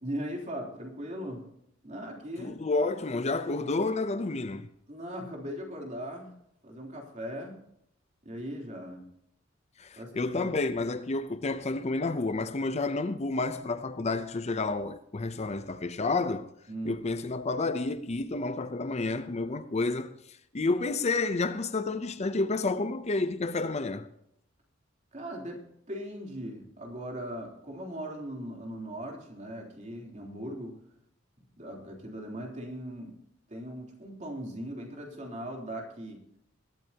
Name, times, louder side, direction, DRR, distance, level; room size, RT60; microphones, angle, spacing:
voice 1, 0.0-1.4 1.8-2.6 4.9-6.3 6.6-7.6 8.2-9.1 9.9-10.6 16.7-17.0 25.1-25.6 25.9-30.7 31.6-33.2 33.5-36.2, equal, 35° right, 3.4 m, -39 dB
voice 2, 2.4-4.7 9.8-16.5 16.8-24.1, left 3 dB, 35° left, 0.6 m, -30 dB
21.0 x 13.0 x 2.9 m
head